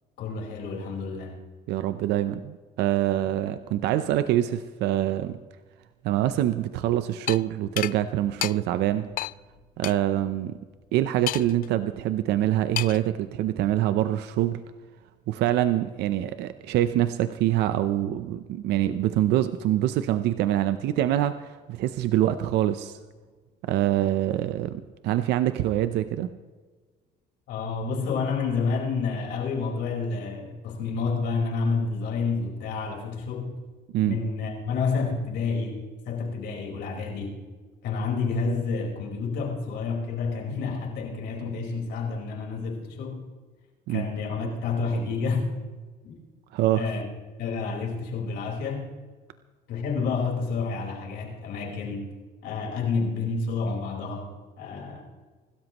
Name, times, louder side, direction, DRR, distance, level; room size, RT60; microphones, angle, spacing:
voice 1, 0.2-1.4 27.5-33.6 34.0-37.4 37.8-43.2 43.9-45.5 46.0-46.2 46.7-47.1 47.4-48.9 49.7-52.1 52.4-55.0, left 4 dB, 80° left, -1 dB, 4.6 m, -29 dB
voice 2, 1.7-5.4 6.0-9.1 9.8-10.6 10.9-14.6 15.3-23.0 23.6-26.3 33.9-34.2 43.9-44.1 46.5-46.9, right 13 dB, 85° right, 11 dB, 0.7 m, -25 dB
sound 1, 7.3-7.4 7.8-7.9 8.4-8.5 9.2-9.3 9.8-9.9 11.3-11.7 12.8-13.1, left 14 dB, 55° left, 0.4 m, -30 dB
25.5 x 13.0 x 3.0 m, 1.4 s
cardioid pair, 110°, 17 cm